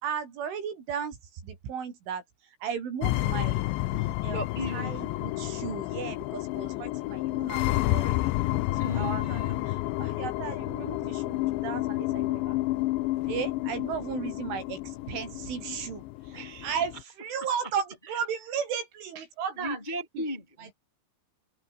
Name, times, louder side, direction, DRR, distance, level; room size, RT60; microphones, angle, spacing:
voice 1, 0.0-3.7 3.9-4.4 4.7-9.4 9.7-12.6 13.2-19.8 20.2-20.3 20.6-20.7, right 7 dB, 75° right, 7.1 m, -35 dB
sound 1, 3.0-17.0, left 18 dB, 75° left, 2.9 m, -30 dB
voice 2, 4.1-5.0 8.7-9.6 16.3-16.8 18.1-18.2 19.6-20.7, equal, 25° left, 1.1 m, -37 dB
open air
omnidirectional pair, 5.6 m